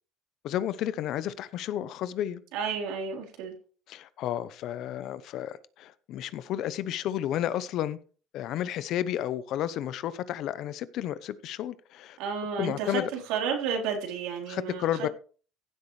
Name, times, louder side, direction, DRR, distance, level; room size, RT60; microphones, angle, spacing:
voice 1, 0.4-2.4 3.9-8.0 8.3-12.2 12.6-13.1 14.5-15.1, left 11 dB, 55° left, 0.7 m, -32 dB
voice 2, 2.5-3.5 12.2-15.1, right 6 dB, 85° right, 3.7 m, -32 dB
15.5 x 8.1 x 3.2 m
cardioid pair, 150°, 0 cm